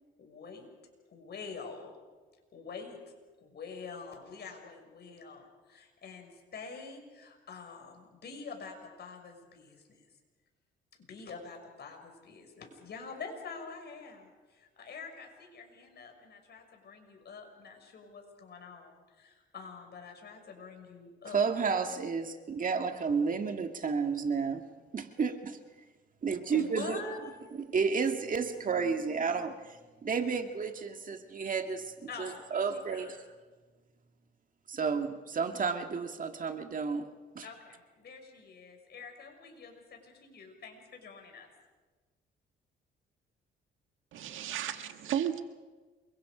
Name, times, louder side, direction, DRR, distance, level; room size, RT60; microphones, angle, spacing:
voice 1, 0.2-0.7 1.1-1.9 2.5-3.0 3.4-10.0 11.1-21.4 26.5-27.3 32.1-32.6 32.9-33.1 37.4-41.5, left 5 dB, 55° left, 3 dB, 6.3 m, -46 dB
voice 2, 21.3-24.7 24.9-25.6 26.2-27.0 27.5-33.2 34.7-37.5, right 5 dB, 40° right, 6 dB, 2.0 m, -32 dB
voice 3, 44.1-45.4, right 10 dB, 80° right, 7 dB, 1.8 m, -33 dB
28.0 x 24.0 x 5.1 m, 1.4 s
cardioid pair, 90°, 20 cm